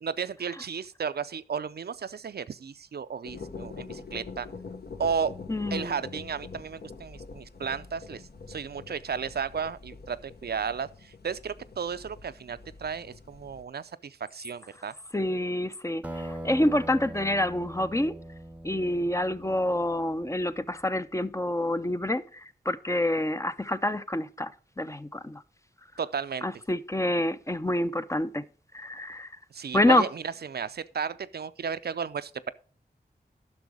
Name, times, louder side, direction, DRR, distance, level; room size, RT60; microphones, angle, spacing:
voice 1, 0.0-4.5 5.0-5.4 5.7-8.2 8.5-14.9 26.0-26.4 29.5-32.5, right 6 dB, 65° right, 0.4 m, -34 dB
sound 1, 3.2-13.6, left 4 dB, 65° left, 0.9 m, -45 dB
voice 2, 5.5-6.0 15.1-18.1 18.6-24.5 24.8-25.4 26.4-28.4 28.7-29.3 29.7-30.1, left 1 dB, 15° left, 0.5 m, -27 dB
Acoustic guitar, 16.0-20.9, right 1 dB, 10° right, 0.8 m, -42 dB
10.5 x 6.1 x 4.8 m
wide cardioid pair, 55°, 18 cm